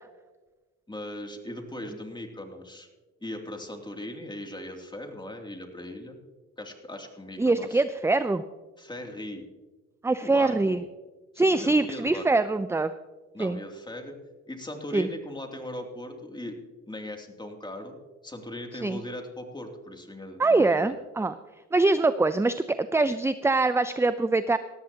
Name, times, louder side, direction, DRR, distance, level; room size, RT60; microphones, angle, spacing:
voice 1, 0.9-2.9 3.2-6.2 6.6-7.8 8.8-9.4 10.2-10.8 11.3-12.3 13.3-14.1 14.5-16.6 16.9-18.0 18.2-20.9, left 1 dB, 15° left, 3 dB, 2.7 m, -39 dB
voice 2, 7.4-8.4 10.0-10.8 11.4-12.9 13.4-13.6 14.9-15.1 18.8-19.0 20.4-21.4 21.7-24.6, right 3 dB, 10° right, 13 dB, 0.5 m, -23 dB
18.5 x 13.5 x 2.9 m, 1.2 s
supercardioid pair, 70°, 31 cm